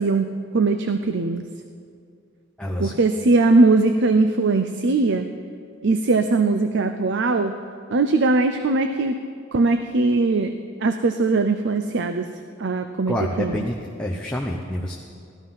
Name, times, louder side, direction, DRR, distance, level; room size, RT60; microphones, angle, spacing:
voice 1, 0.0-1.4 2.8-5.3 5.8-7.5 7.9-9.1 9.5-10.5 10.8-12.3 12.6-13.6, right 3 dB, 55° right, 8 dB, 0.6 m, -20 dB
voice 2, 2.6-3.0 13.1-15.0, equal, 5° left, -2 dB, 0.8 m, -27 dB
17.0 x 13.5 x 5.7 m, 2.3 s
head